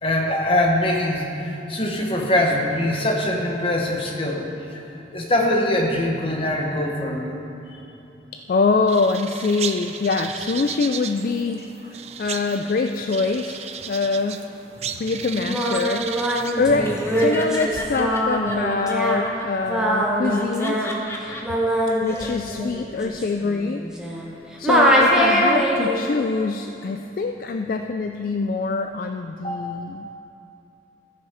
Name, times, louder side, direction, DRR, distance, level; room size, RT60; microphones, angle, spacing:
voice 1, 0.0-4.8 5.1-7.3 14.8-15.0 16.4-16.6 29.4-29.8, left 1 dB, 30° left, 0 dB, 1.2 m, -23 dB
voice 2, 8.3-11.7 12.2-14.4 15.0-16.1 16.6-20.9 22.0-23.8 24.6-30.1, left 4 dB, 50° left, 6 dB, 0.3 m, -24 dB
sound 1, 8.9-16.9, right 8 dB, 35° right, 0.4 m, -34 dB
Singing, 15.3-24.3 24.6-26.0, equal, 5° right, 1.1 m, -22 dB
Laughter, 16.8-19.4 20.2-21.4 21.9-22.3, left 1 dB, 15° left, 0.8 m, -34 dB
14.0 x 6.4 x 5.0 m, 2.9 s
head